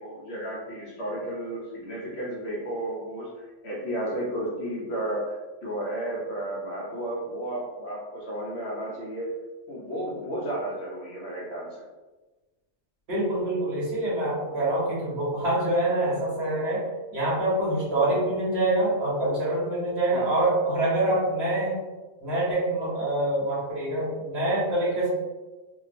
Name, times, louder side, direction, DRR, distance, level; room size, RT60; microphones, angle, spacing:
voice 1, 0.0-9.3 9.7-11.8 18.0-18.3 20.1-20.2, right 1 dB, 60° left, -4 dB, 1.0 m, -33 dB
voice 2, 13.1-16.8 17.1-21.8 22.2-25.1, right 1 dB, 55° right, -8 dB, 1.6 m, -25 dB
3.1 x 2.7 x 2.5 m, 1.2 s
omnidirectional pair, 1.3 m